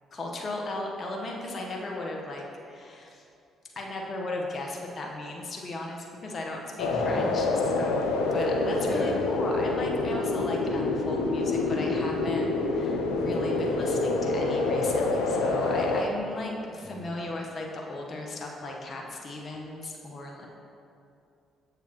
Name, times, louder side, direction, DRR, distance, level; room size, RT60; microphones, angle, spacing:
voice 1, 0.1-3.2 3.7-20.5, left 2 dB, 45° left, 0 dB, 1.0 m, -36 dB
sound 1, 6.8-16.0, left 3 dB, 85° left, 0.5 m, -27 dB
voice 2, 6.9-7.3 8.8-9.2 16.8-17.1, left 1 dB, 15° left, -1 dB, 1.5 m, -36 dB
7.1 x 7.1 x 3.0 m, 2.5 s
hypercardioid pair, 55°, 0 cm